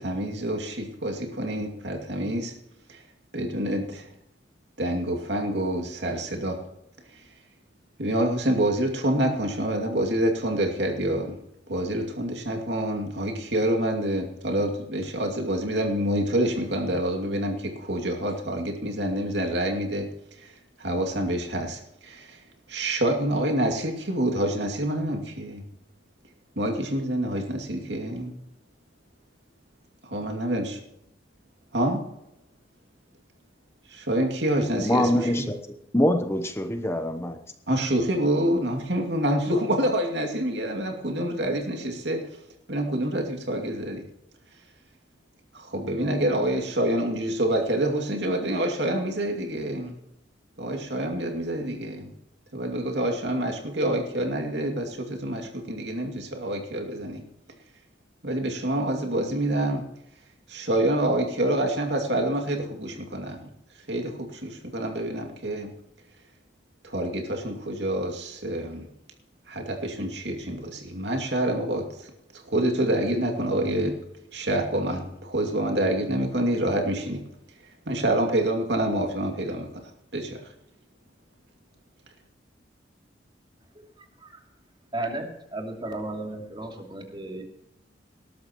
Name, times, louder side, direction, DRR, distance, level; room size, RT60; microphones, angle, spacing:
voice 1, 0.0-2.5 2.9-3.0 3.3-4.1 4.8-6.6 7.1-7.2 8.0-11.4 11.7-20.1 20.4-20.5 20.8-22.4 22.7-25.6 26.6-28.3 30.0-30.8 31.7-32.0 33.9-35.5 37.7-42.3 42.7-44.0 45.5-49.9 50.6-52.1 52.5-57.2 58.2-59.8 60.5-63.5 63.9-65.7 66.8-68.9 69.5-74.0 74.3-77.2 77.9-79.7 80.1-80.5, right 1 dB, 70° right, 3 dB, 2.5 m, -27 dB
voice 2, 34.8-35.6 35.9-37.4, left 1 dB, 15° left, 6 dB, 0.9 m, -24 dB
voice 3, 84.9-85.3 85.5-87.4, right 2 dB, 25° right, 1 dB, 3.0 m, -33 dB
19.5 x 13.0 x 3.1 m, 0.83 s
head